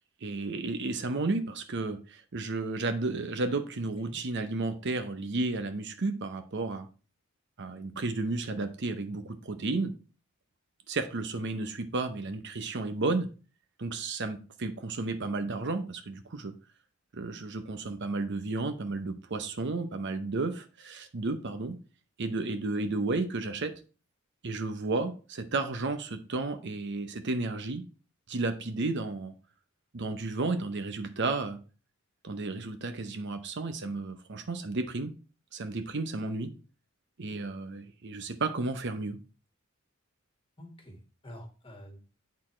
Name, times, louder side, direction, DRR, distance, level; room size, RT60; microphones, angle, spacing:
voice 1, 0.2-6.9 7.6-9.9 10.9-13.3 13.8-16.5 17.1-21.8 22.2-23.7 24.4-27.8 28.3-29.3 29.9-31.6 32.2-35.1 35.5-36.5 37.2-39.2, right 3 dB, 60° right, 0.8 m, -32 dB
voice 2, 40.6-42.0, equal, 25° left, 1.8 m, -47 dB
8.6 x 4.1 x 4.3 m
head